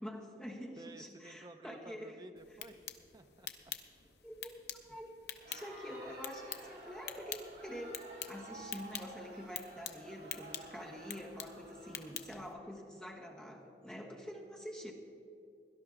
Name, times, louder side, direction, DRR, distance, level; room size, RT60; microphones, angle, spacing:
voice 1, 0.0-2.2 4.2-4.6 4.9-5.1 5.5-14.9, equal, 5° left, -2 dB, 1.4 m, -46 dB
voice 2, 0.8-2.8 3.1-4.1, right 2 dB, 20° right, 7 dB, 0.6 m, -54 dB
sound 1, 2.4-12.5, left 10 dB, 65° left, 0.8 m, -48 dB
Crowd, 5.3-12.8, right 2 dB, 65° right, 3.7 m, -53 dB
17.5 x 11.5 x 3.8 m, 2.6 s
head